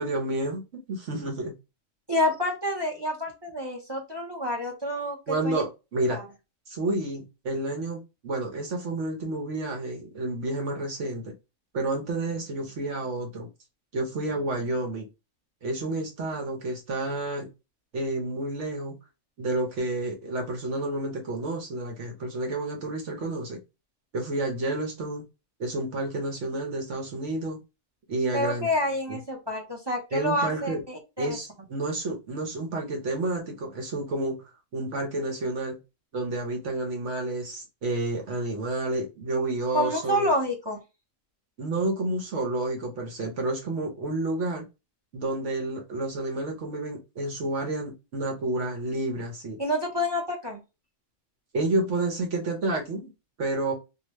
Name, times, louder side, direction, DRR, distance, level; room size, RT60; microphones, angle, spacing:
voice 1, 0.0-1.5 5.3-6.2 6.7-11.3 11.7-13.5 13.9-15.1 15.6-17.5 17.9-19.0 19.4-23.6 24.1-25.2 25.6-27.6 28.1-28.7 29.1-29.2 30.1-30.8 31.2-34.4 34.7-35.8 36.1-40.3 41.6-44.7 45.1-49.6 51.5-53.1 53.4-53.7, right 2 dB, 65° right, 1.2 m, -30 dB
voice 2, 2.1-5.6 6.1-6.2 28.3-31.4 39.7-40.8 49.6-50.6, left 1 dB, 25° right, 0.7 m, -28 dB
3.0 x 2.2 x 3.0 m
omnidirectional pair, 1.4 m